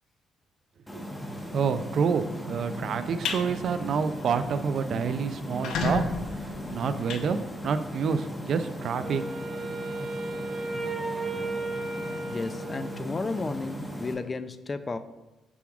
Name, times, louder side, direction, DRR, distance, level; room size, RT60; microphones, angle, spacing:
sound 1, 0.9-14.1, equal, 10° left, 1.3 m, -38 dB
voice 1, 1.5-6.1 6.7-7.4 7.6-9.2, right 6 dB, 60° right, 11 dB, 0.4 m, -28 dB
sound 2, 3.0-3.4 3.9-4.1 4.5-4.6 4.8-4.9 5.4-8.0, left 4 dB, 80° left, 0.7 m, -32 dB
Wind instrument woodwind instrument, 9.0-13.4, right 3 dB, 30° right, 0.9 m, -35 dB
voice 2, 12.3-15.0, left 3 dB, 30° left, 11 dB, 0.4 m, -33 dB
7.0 x 5.9 x 2.4 m, 1.0 s
cardioid pair, 90°, 0 cm